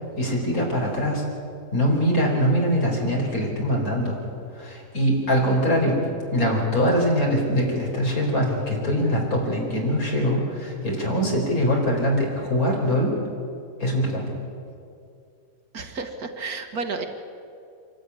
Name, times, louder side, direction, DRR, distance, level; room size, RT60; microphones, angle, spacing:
voice 1, 0.2-1.2 1.7-4.2 4.5-6.0 6.3-13.2 13.8-14.3, equal, 55° left, -1 dB, 4.9 m, -23 dB
voice 2, 15.7-17.1, right 4 dB, 65° right, 5 dB, 2.0 m, -31 dB
26.0 x 13.0 x 9.8 m, 2.5 s
omnidirectional pair, 1.8 m